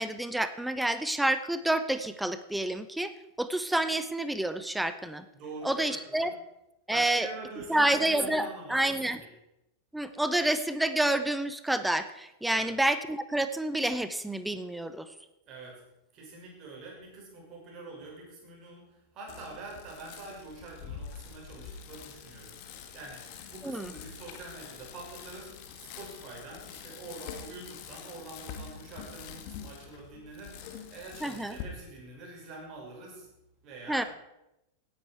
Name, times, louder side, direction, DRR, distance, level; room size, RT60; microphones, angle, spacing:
voice 1, 0.0-3.1 3.4-5.2 5.6-6.3 6.9-7.3 7.7-9.2 9.9-15.1 23.6-23.9 31.2-31.6 33.9-34.0, right 1 dB, 5° right, 11 dB, 0.8 m, -28 dB
voice 2, 5.3-6.3 6.9-9.1 12.5-12.7 15.5-15.8 16.1-33.3 33.6-34.1, right 3 dB, 35° right, -2 dB, 6.1 m, -45 dB
Bicycle, 19.3-31.6, left 8 dB, 45° left, 1.8 m, -45 dB
17.0 x 10.0 x 4.6 m, 0.89 s
figure-of-eight pair, 90°, 0 cm